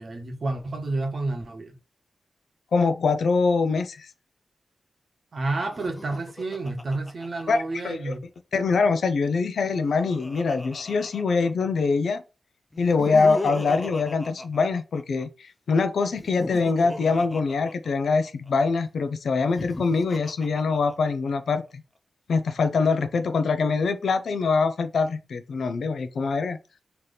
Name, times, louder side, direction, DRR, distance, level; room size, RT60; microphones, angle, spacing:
voice 1, 0.0-1.8 5.3-8.2, right 2 dB, 50° right, 0.9 m, -30 dB
voice 2, 2.7-4.1 7.5-8.1 8.5-12.2 12.8-21.8 22.3-26.6, left 4 dB, 80° left, 0.5 m, -24 dB
Laughter, 5.6-8.2 9.5-11.9 12.7-15.3 16.1-18.5 19.4-21.3, left 2 dB, 20° left, 0.4 m, -38 dB
3.3 x 2.9 x 3.9 m
wide cardioid pair, 110°, 0 cm